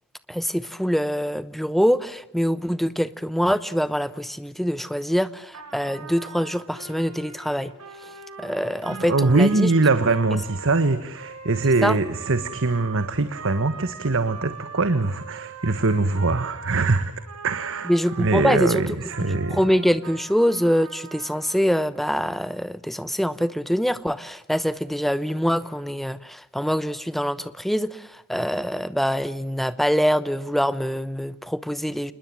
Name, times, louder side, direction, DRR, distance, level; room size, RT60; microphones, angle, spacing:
voice 1, 0.3-7.7 8.0-9.7 11.8-12.0 17.9-18.8 19.5-32.1, equal, ahead, 0.9 m, -24 dB
Trumpet, 5.5-18.6 19.1-21.6, right 5 dB, 85° right, 4.3 m, -41 dB
voice 2, 8.9-17.1 17.4-17.9 18.2-19.6, right 3 dB, 60° right, 1.4 m, -22 dB
28.0 x 21.0 x 7.6 m
head